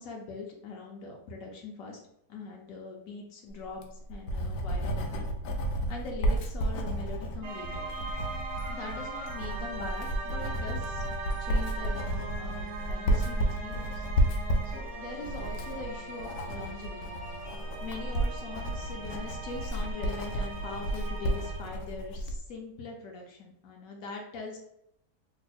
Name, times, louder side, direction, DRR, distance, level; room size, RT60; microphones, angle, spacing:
voice 1, 0.0-2.0 2.3-5.3 5.9-7.9 8.7-11.0 11.4-14.0 14.7-17.0 17.6-24.6, left 3 dB, 65° left, 1 dB, 0.9 m, -42 dB
Writing, 3.6-22.4, right 1 dB, 90° left, 1.2 m, -32 dB
sound 1, 7.4-21.9, right 3 dB, 70° right, 0.7 m, -41 dB
3.1 x 2.0 x 4.1 m, 0.78 s
omnidirectional pair, 1.8 m